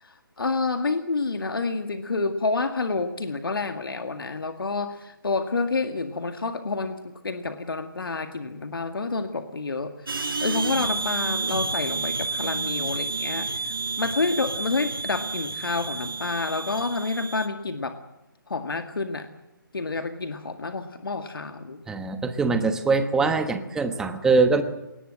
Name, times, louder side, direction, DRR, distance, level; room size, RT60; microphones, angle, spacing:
voice 1, 0.0-7.0 7.2-18.0 18.5-19.3 19.7-21.8, left 3 dB, 75° left, 8 dB, 2.0 m, -29 dB
sound 1, 10.1-17.5, right 4 dB, 80° right, 4.3 m, -30 dB
voice 2, 21.9-24.6, right 4 dB, 5° right, 9 dB, 1.1 m, -22 dB
21.5 x 19.5 x 7.7 m, 0.94 s
figure-of-eight pair, 155°, 12 cm